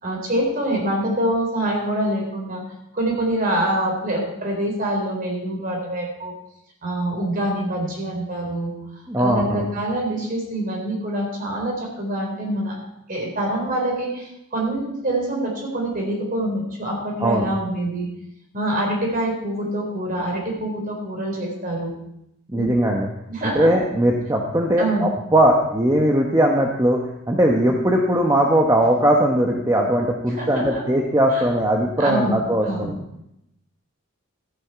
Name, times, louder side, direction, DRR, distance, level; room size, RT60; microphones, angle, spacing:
voice 1, 0.0-2.6 2.9-6.3 6.8-8.7 9.2-12.8 13.1-18.1 18.5-21.9 22.5-22.7 23.3-23.7 24.8-25.1 30.2-30.8 31.3-31.5 32.0-33.0, right 1 dB, 45° right, 0 dB, 4.0 m, -25 dB
voice 2, 9.1-9.6 17.2-17.4 22.5-23.1 23.4-27.0 27.3-32.9, right 1 dB, 15° right, 0 dB, 1.0 m, -19 dB
13.5 x 9.8 x 4.6 m, 0.82 s
head